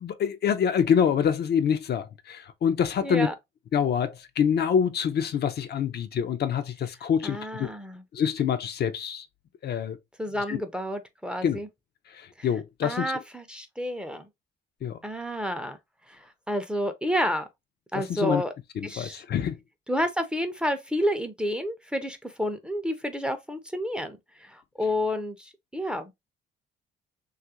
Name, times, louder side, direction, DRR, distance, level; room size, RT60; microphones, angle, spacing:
voice 1, 0.0-3.3 3.7-7.7 8.1-9.3 9.6-10.0 10.5-10.6 11.4-11.6 12.1-13.1 14.8-15.0 17.9-18.4 18.8-19.6, left 8 dB, 55° left, 0.5 m, -26 dB
voice 2, 3.0-3.3 7.2-8.0 10.2-11.7 12.4-12.5 12.8-14.3 15.0-15.8 16.1-17.5 17.9-18.5 18.8-19.2 19.9-26.1, equal, 5° right, 0.5 m, -30 dB
2.9 x 2.4 x 2.7 m
cardioid pair, 90°, 20 cm